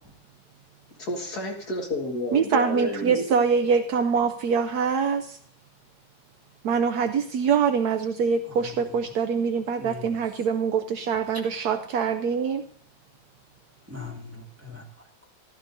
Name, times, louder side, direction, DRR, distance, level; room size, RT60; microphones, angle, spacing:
voice 1, 1.0-3.2, left 1 dB, 60° left, 0 dB, 2.4 m, -30 dB
voice 2, 2.3-5.4 6.6-12.6, right 6 dB, 70° right, 7 dB, 1.0 m, -24 dB
voice 3, 8.4-9.2 9.8-10.2 13.9-15.1, left 4 dB, 10° right, -1 dB, 1.9 m, -42 dB
14.5 x 12.0 x 2.7 m, 0.62 s
omnidirectional pair, 1.9 m